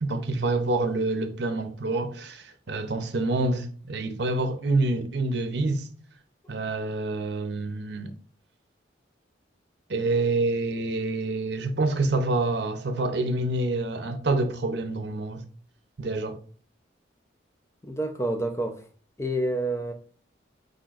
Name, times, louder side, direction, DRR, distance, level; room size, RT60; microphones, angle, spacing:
voice 1, 0.0-5.9 6.5-8.1 9.9-15.4 16.0-16.4, right 2 dB, 65° right, 0.7 m, -27 dB
voice 2, 17.8-18.8 19.2-19.9, right 1 dB, 15° left, 0.6 m, -28 dB
5.0 x 4.3 x 2.5 m
head